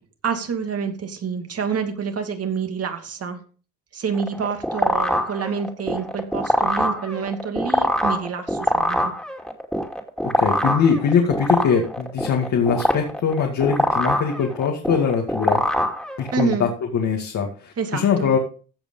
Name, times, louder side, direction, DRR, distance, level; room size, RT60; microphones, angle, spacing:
voice 1, 0.2-3.4 3.9-9.1 16.3-16.7 17.8-18.3, right 6 dB, 50° right, 6 dB, 2.5 m, -27 dB
sound 1, 4.1-16.5, equal, ahead, 2.6 m, -23 dB
voice 2, 10.4-15.6 16.2-18.4, left 6 dB, 70° left, 1 dB, 2.3 m, -22 dB
16.0 x 5.3 x 5.5 m, 0.38 s
cardioid pair, 90°, 30 cm